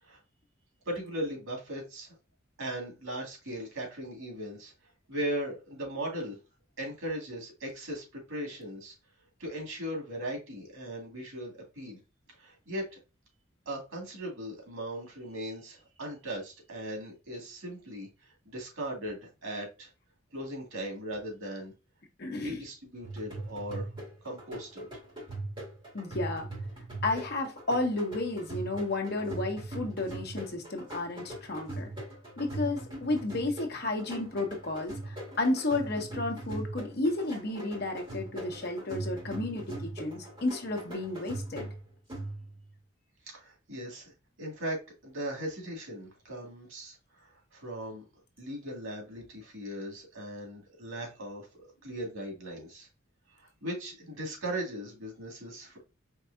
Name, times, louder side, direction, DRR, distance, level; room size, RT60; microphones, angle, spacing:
voice 1, 0.9-2.1 2.6-4.7 5.1-6.4 6.8-8.9 9.4-12.0 12.4-12.9 13.7-19.9 20.3-21.7 22.3-23.9 24.2-24.9 43.2-44.1 44.4-48.0 48.4-52.9 53.3-55.8, right 1 dB, 85° right, 0 dB, 2.1 m, -38 dB
voice 2, 22.2-22.6 25.9-26.5 27.0-31.9 32.4-41.7, left 2 dB, 50° left, 4 dB, 1.0 m, -32 dB
sound 1, 23.0-42.7, right 2 dB, 25° right, 2.3 m, -41 dB
4.7 x 3.3 x 2.6 m, 0.29 s
head